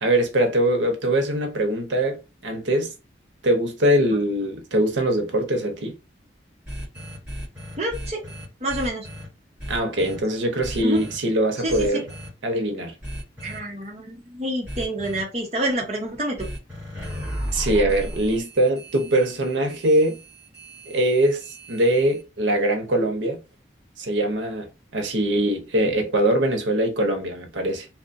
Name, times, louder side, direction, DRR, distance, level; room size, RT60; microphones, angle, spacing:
voice 1, 0.0-2.9 3.4-5.9 9.7-12.1 12.4-12.9 17.5-20.2 20.9-23.4 24.0-27.9, right 1 dB, 85° right, 0.7 m, -22 dB
sound 1, 6.7-9.3 9.6-10.2 10.6-11.2 11.7-12.3 13.0-13.6 14.7-15.2 16.4-22.2, equal, 5° right, 1.4 m, -35 dB
voice 2, 7.8-8.2 8.6-9.1 10.8-11.0 11.6-12.0 13.4-16.5, right 1 dB, 35° right, 0.9 m, -28 dB
2.7 x 2.2 x 2.5 m
head